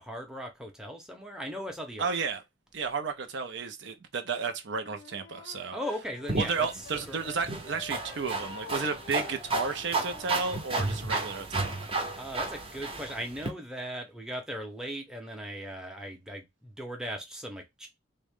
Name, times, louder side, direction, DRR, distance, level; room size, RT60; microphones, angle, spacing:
voice 1, 0.0-2.1 5.7-6.7 7.1-7.3 12.1-17.9, equal, 5° right, 0.7 m, -38 dB
voice 2, 2.0-2.4 2.7-5.8 6.4-11.8, right 5 dB, 65° right, 0.5 m, -32 dB
Wind instrument woodwind instrument, 4.8-7.4 7.6-10.4, left 6 dB, 60° left, 0.4 m, -47 dB
sound 1, 6.3-13.5, right 3 dB, 30° right, 0.8 m, -33 dB
3.6 x 2.2 x 3.5 m
head